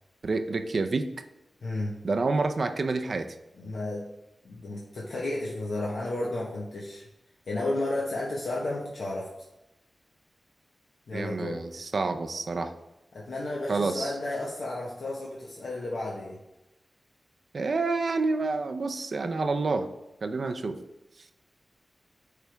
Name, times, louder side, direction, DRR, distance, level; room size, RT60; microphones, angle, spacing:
voice 1, 0.2-1.1 2.0-3.3 11.1-12.7 13.7-14.1 17.5-19.9 20.2-20.8, right 3 dB, 65° right, 8 dB, 0.5 m, -28 dB
voice 2, 1.6-1.9 3.6-4.0 4.4-7.1 7.5-9.3 11.1-11.6 13.1-16.4, left 2 dB, 80° left, -5 dB, 1.1 m, -32 dB
8.2 x 3.4 x 3.4 m, 0.92 s
wide cardioid pair, 65°, 0 cm